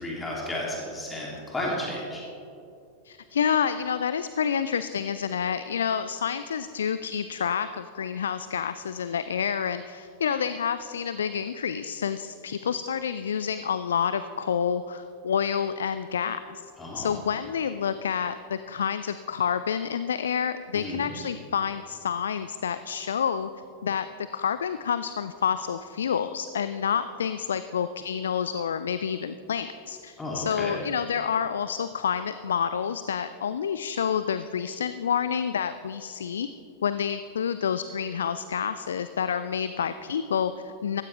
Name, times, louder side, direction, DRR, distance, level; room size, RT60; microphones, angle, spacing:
voice 1, 0.0-2.2 16.8-17.1 20.7-21.1 30.2-30.8, left 1 dB, 10° left, -4 dB, 2.9 m, -33 dB
voice 2, 3.0-16.6 16.9-23.5 23.8-36.5 36.8-41.0, left 7 dB, 65° left, 12 dB, 0.4 m, -28 dB
15.5 x 14.0 x 3.4 m, 2.6 s
figure-of-eight pair, 90°, 0 cm